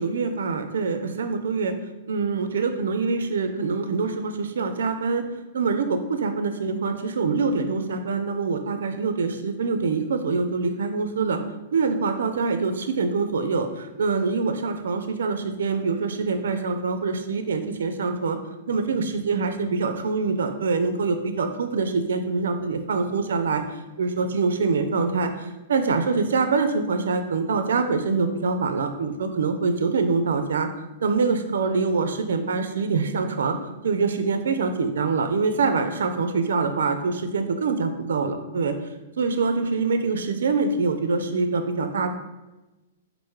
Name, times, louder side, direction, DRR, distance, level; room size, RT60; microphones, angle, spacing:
voice 1, 0.0-1.7 2.1-5.2 5.5-11.4 11.7-18.4 18.7-33.6 33.8-38.7 39.2-42.1, right 4 dB, 75° right, 8 dB, 0.4 m, -25 dB
4.4 x 2.6 x 4.6 m, 1.1 s
hypercardioid pair, 125°, 0 cm